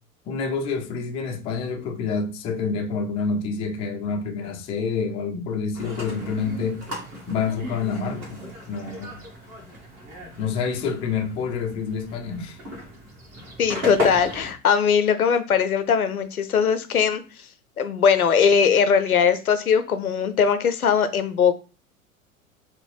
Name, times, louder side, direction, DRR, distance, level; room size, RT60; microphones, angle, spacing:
voice 1, 0.3-6.8 7.3-9.2 10.4-12.6, left 5 dB, 15° left, 0.3 m, -28 dB
sound 1, 5.7-14.5, left 1 dB, 40° right, 1.6 m, -35 dB
voice 2, 13.6-17.2 17.8-21.5, left 6 dB, 85° left, 0.5 m, -20 dB
4.2 x 2.1 x 3.3 m
figure-of-eight pair, 90°, 42 cm